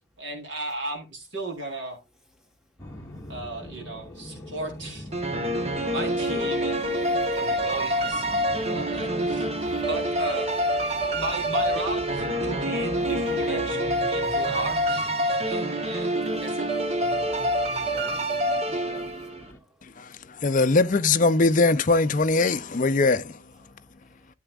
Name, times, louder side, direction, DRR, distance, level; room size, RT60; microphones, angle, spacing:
voice 1, 0.2-2.0 3.3-5.1 5.9-9.5 9.9-10.7 11.0-16.7, right 2 dB, 60° right, 4.1 m, -36 dB
sound 1, 2.8-19.6, equal, 15° left, 1.7 m, -42 dB
sound 2, 5.1-19.4, equal, 30° right, 1.1 m, -26 dB
voice 2, 14.3-14.7 15.2-15.7 16.1-16.3 16.7-16.8 17.1-17.5 17.8-19.8 20.0-20.5 23.6-24.3, equal, ahead, 1.2 m, -51 dB
voice 3, 20.4-23.3, left 3 dB, 40° left, 0.5 m, -21 dB
13.5 x 8.0 x 2.4 m
head